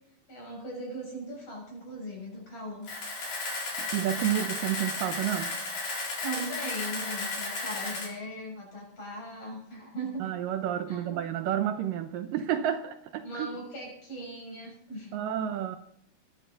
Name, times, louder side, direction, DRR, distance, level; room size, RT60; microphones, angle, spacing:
voice 1, 0.3-2.9 6.2-10.3 10.9-11.2 13.2-15.5, right 1 dB, 40° left, 7.4 m, -39 dB
Camera, 2.8-8.1, left 3 dB, 65° left, 6.1 m, -34 dB
voice 2, 3.8-5.5 10.2-13.5 15.1-15.8, right 11 dB, 75° right, 2.4 m, -30 dB
20.5 x 14.5 x 4.0 m
omnidirectional pair, 4.2 m